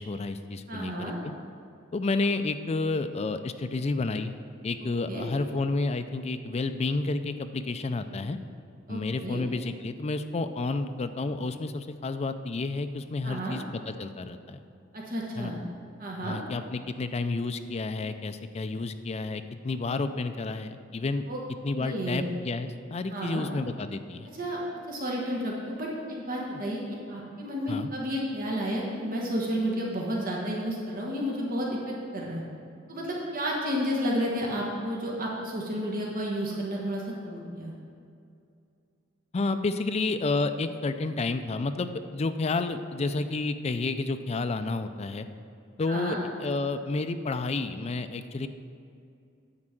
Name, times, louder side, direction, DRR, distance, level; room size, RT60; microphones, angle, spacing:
voice 1, 0.0-1.3 1.9-4.3 4.6-8.4 8.9-14.6 15.4-15.5 16.2-21.2 21.6-24.3 27.7-27.9 39.3-45.3 45.8-48.5, left 3 dB, 30° left, 9 dB, 0.4 m, -30 dB
voice 2, 0.7-1.1 5.1-5.2 8.9-9.4 13.2-13.5 14.9-15.6 16.0-16.4 21.3-21.4 21.8-22.2 23.1-23.4 24.3-24.6 24.9-32.4 32.9-37.7 45.9-46.2, equal, 45° right, -3 dB, 1.3 m, -31 dB
9.8 x 4.4 x 7.6 m, 2.5 s
head